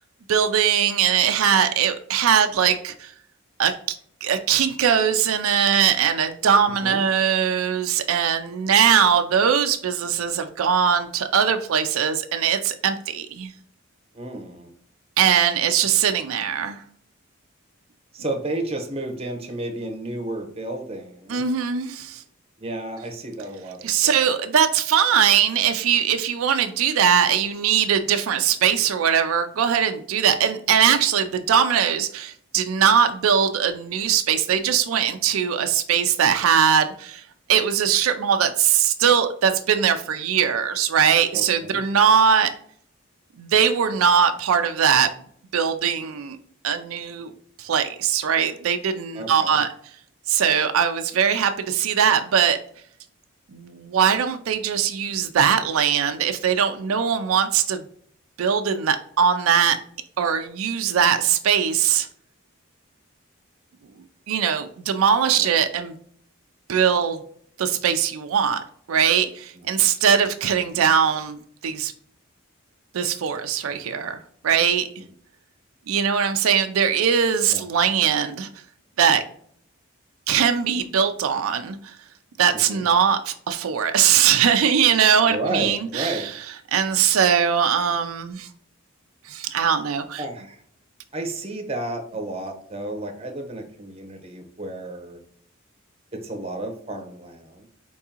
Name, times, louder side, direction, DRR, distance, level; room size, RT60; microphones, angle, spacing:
voice 1, 0.3-3.1 3.6-4.0 4.2-13.5 15.2-16.8 21.3-22.2 23.8-42.5 43.4-45.1 45.5-46.4 46.6-47.3 47.6-49.7 50.3-52.6 53.5-57.9 58.4-59.8 60.2-62.1 64.3-66.0 66.7-67.2 67.6-71.4 71.6-71.9 72.9-75.0 75.9-78.5 79.0-79.2 80.3-82.0 82.4-86.3 86.7-88.5 89.2-90.2, right 8 dB, 80° right, 7 dB, 0.4 m, -21 dB
voice 2, 14.1-14.7 18.1-21.5 22.6-24.2 41.3-41.8 49.1-49.6 65.3-65.5 69.6-69.7 70.1-70.2 73.7-74.2 77.5-77.6 82.7-82.8 85.3-86.3 90.2-90.6 91.1-95.2 96.1-97.7, right 2 dB, 30° right, 3 dB, 0.8 m, -32 dB
4.6 x 3.6 x 2.8 m, 0.62 s
head